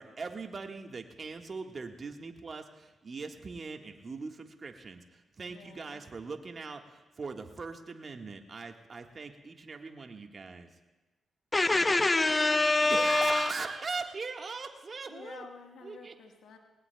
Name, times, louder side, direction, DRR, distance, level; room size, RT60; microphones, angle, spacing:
voice 1, 0.0-10.7 12.8-15.4 15.8-16.1, right 4 dB, 45° right, 4 dB, 1.6 m, -40 dB
voice 2, 5.5-6.0 15.1-16.6, left 5 dB, 70° left, 3 dB, 1.5 m, -49 dB
voice 3, 11.5-13.5, left 2 dB, 25° left, 13 dB, 0.6 m, -25 dB
20.0 x 19.0 x 2.3 m, 1.2 s
hypercardioid pair, 45°, 0 cm